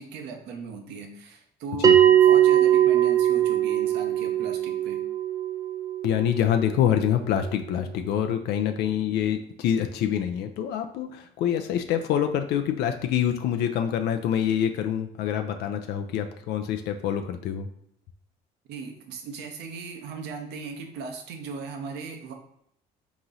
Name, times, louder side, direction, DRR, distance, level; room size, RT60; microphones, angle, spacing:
voice 1, 0.0-5.0 18.7-22.3, right 4 dB, 85° right, 4 dB, 0.8 m, -38 dB
Bell, 1.8-6.9, right 11 dB, 20° right, 0.3 m, -20 dB
voice 2, 6.0-17.7, left 9 dB, 80° left, 7 dB, 0.4 m, -26 dB
3.9 x 3.0 x 3.8 m, 0.70 s
cardioid pair, 110°, 17 cm